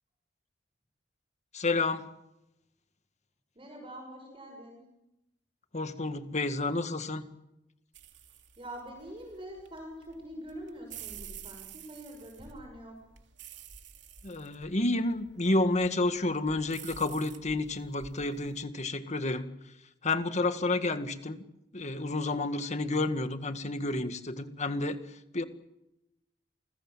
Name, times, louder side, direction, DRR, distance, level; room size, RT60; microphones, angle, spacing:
voice 1, 1.5-2.1 5.7-7.3 14.2-19.5 20.0-21.4 21.7-25.0 25.3-25.4, left 2 dB, 40° left, 9 dB, 1.9 m, -30 dB
voice 2, 3.5-4.9 8.6-13.0, right 1 dB, 30° right, 2 dB, 6.5 m, -45 dB
sound 1, 7.9-18.6, right 8 dB, 75° right, 2.9 m, -50 dB
29.0 x 21.5 x 7.5 m, 0.87 s
head